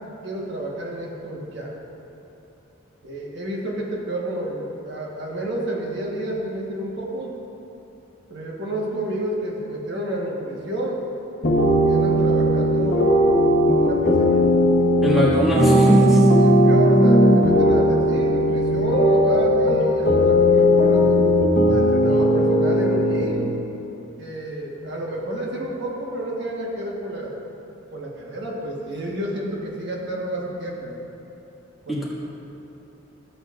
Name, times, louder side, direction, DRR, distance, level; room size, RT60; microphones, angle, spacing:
voice 1, 0.2-1.8 3.0-7.4 8.3-11.0 11.8-13.3 13.8-14.4 16.3-21.2 21.6-23.6 24.2-27.4 27.9-30.9 31.8-32.0, right 1 dB, 55° right, -3 dB, 1.4 m, -30 dB
sound 1, 11.4-23.2, equal, 50° left, 1.1 m, -17 dB
voice 2, 15.0-16.3 31.9-32.0, equal, ahead, -8 dB, 1.8 m, -21 dB
13.0 x 8.4 x 2.5 m, 3.0 s
head